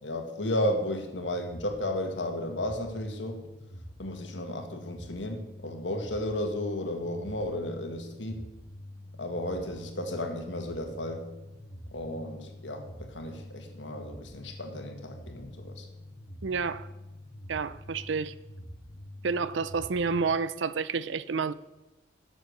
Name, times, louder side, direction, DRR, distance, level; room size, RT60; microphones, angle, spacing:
voice 1, 0.0-3.4 4.0-8.4 9.2-11.3 11.9-15.9, left 1 dB, 85° left, 1.9 m, -33 dB
sound 1, 1.2-20.2, left 1 dB, 20° left, 1.3 m, -46 dB
voice 2, 16.4-16.9 17.5-18.4 19.2-21.5, right 5 dB, 85° right, 0.5 m, -29 dB
12.0 x 7.4 x 6.7 m
head